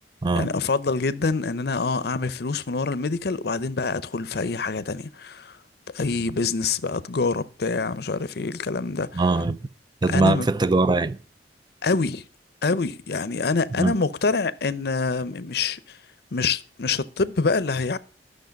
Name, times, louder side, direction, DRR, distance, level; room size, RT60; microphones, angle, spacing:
voice 1, 0.4-5.6 5.9-9.2 10.1-10.5 11.8-12.2 12.6-16.0 16.3-18.0, left 4 dB, 60° left, 0.6 m, -26 dB
voice 2, 9.1-9.6 10.0-11.2 13.7-13.9, right 3 dB, 25° right, 0.5 m, -21 dB
12.0 x 6.5 x 5.2 m
head